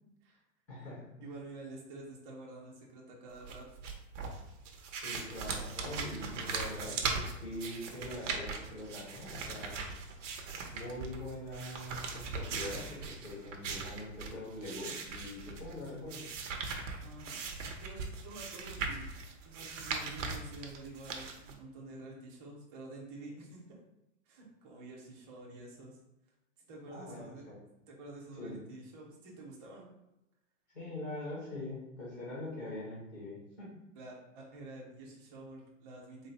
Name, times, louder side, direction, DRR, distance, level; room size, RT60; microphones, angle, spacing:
voice 1, 0.7-1.4 5.0-9.8 10.7-16.2 26.9-27.6 28.4-28.6 30.7-33.8, left 1 dB, 5° left, -7 dB, 0.3 m, -43 dB
voice 2, 1.2-3.6 17.0-17.4 17.8-19.0 19.4-23.8 24.3-26.0 26.7-27.4 27.9-29.9 34.0-36.3, right 2 dB, 25° right, -3 dB, 0.7 m, -49 dB
sound 1, 3.4-21.5, right 4 dB, 75° right, 0.8 m, -40 dB
3.8 x 2.0 x 4.0 m, 0.91 s
supercardioid pair, 160°, 37 cm